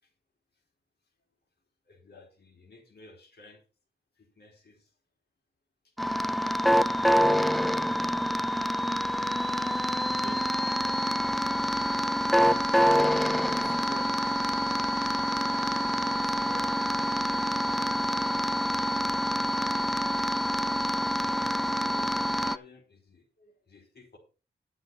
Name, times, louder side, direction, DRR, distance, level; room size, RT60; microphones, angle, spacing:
voice 1, 1.9-3.6 4.2-4.9 5.8-5.9 21.3-24.2, left 3 dB, 55° left, 1 dB, 4.2 m, -54 dB
sound 1, 6.0-22.6, equal, ahead, 0.4 m, -26 dB
voice 2, 9.6-10.4 10.8-12.5 13.5-14.2 16.4-16.8, right 3 dB, 35° right, 4 dB, 2.5 m, -48 dB
11.0 x 7.8 x 4.7 m, 0.33 s
wide cardioid pair, 125°, 19 cm